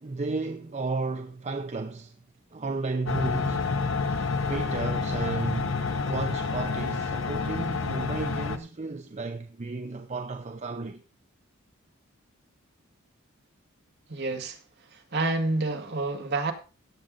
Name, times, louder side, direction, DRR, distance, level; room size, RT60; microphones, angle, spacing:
voice 1, 0.0-2.2 2.5-3.8 4.5-5.8 6.1-11.0, right 3 dB, 35° right, 0.6 m, -33 dB
sound 1, 3.1-8.6, left 4 dB, 65° left, 1.0 m, -29 dB
voice 2, 14.1-14.6 14.9-16.5, right 2 dB, 55° right, 2.0 m, -28 dB
16.0 x 7.7 x 3.9 m
head